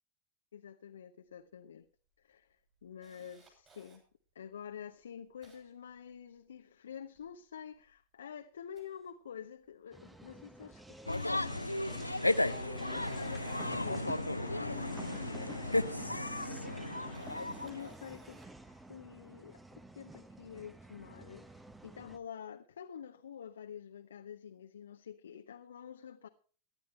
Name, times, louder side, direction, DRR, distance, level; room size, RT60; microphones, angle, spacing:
voice 1, 0.5-1.9 2.2-2.6 2.8-4.0 4.3-11.6 12.8-17.1 17.4-19.6 19.9-26.3, left 8 dB, 65° left, 0.9 m, -48 dB
Camera, 1.8-1.9 2.3-4.0 4.6-4.7 5.0-6.6 6.9-8.2 8.6-9.7 10.0-10.3 10.7-14.7 15.8-15.9 16.9-18.7 19.2-19.4, right 4 dB, 25° right, 7.4 m, -64 dB
sound 1, 9.9-22.2, right 1 dB, 10° right, 1.1 m, -49 dB
sound 2, 11.1-17.9, left 2 dB, 85° left, 0.5 m, -34 dB
19.0 x 11.5 x 3.2 m
figure-of-eight pair, 90°, 0 cm